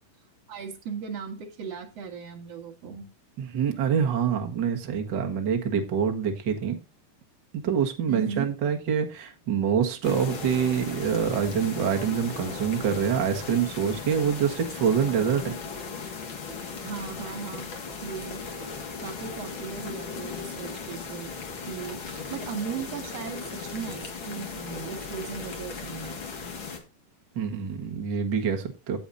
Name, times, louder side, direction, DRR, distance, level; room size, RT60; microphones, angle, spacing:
voice 1, 0.5-3.1 8.1-8.5 16.8-17.7 18.0-21.3 21.7-26.2, right 6 dB, 50° right, 4 dB, 2.1 m, -37 dB
voice 2, 3.4-6.8 7.5-15.5 27.3-29.0, right 7 dB, 80° right, 4 dB, 1.0 m, -26 dB
sound 1, 10.0-26.8, left 5 dB, 45° left, 1.7 m, -37 dB
17.0 x 7.0 x 2.7 m, 0.27 s
omnidirectional pair, 4.6 m